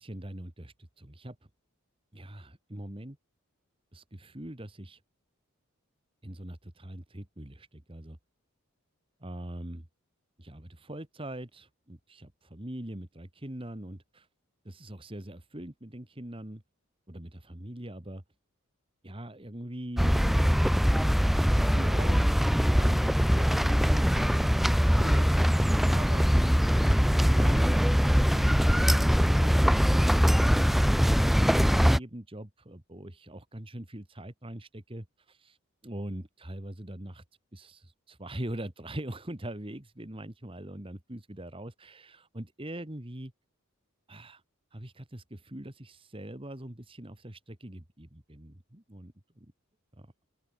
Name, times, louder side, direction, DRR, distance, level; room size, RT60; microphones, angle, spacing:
voice 1, 0.0-1.4 2.1-3.2 3.9-5.0 6.2-8.2 9.2-9.9 10.4-14.3 14.7-16.6 17.1-18.2 19.0-28.0 28.3-30.7 31.2-35.6 35.8-37.2 37.5-43.3 44.1-44.4 44.7-49.5 49.9-50.1, right 1 dB, 25° right, 1.8 m, -42 dB
sound 1, 20.0-32.0, equal, ahead, 0.6 m, -22 dB
open air
head